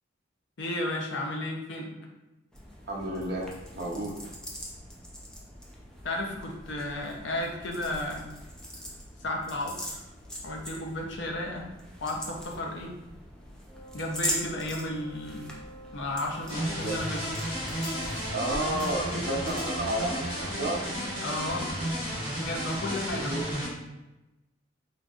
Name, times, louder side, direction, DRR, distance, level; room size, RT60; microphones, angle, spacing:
voice 1, 0.6-1.9 6.0-8.3 9.2-10.0 10.4-11.7 12.0-12.9 13.9-15.5 15.9-17.2 21.2-21.7 22.4-23.7, left 1 dB, 65° left, 0 dB, 0.6 m, -33 dB
sound 1, 2.5-20.2, equal, 5° left, 0.4 m, -41 dB
voice 2, 2.9-4.2 16.5-16.9 18.3-20.8 23.1-23.6, right 1 dB, 55° right, -2 dB, 0.6 m, -32 dB
Wind instrument woodwind instrument, 13.7-21.9, right 1 dB, 15° right, 1.1 m, -48 dB
sound 2, 16.5-23.7, equal, 30° left, 1.5 m, -33 dB
3.8 x 2.6 x 2.3 m, 1.0 s
head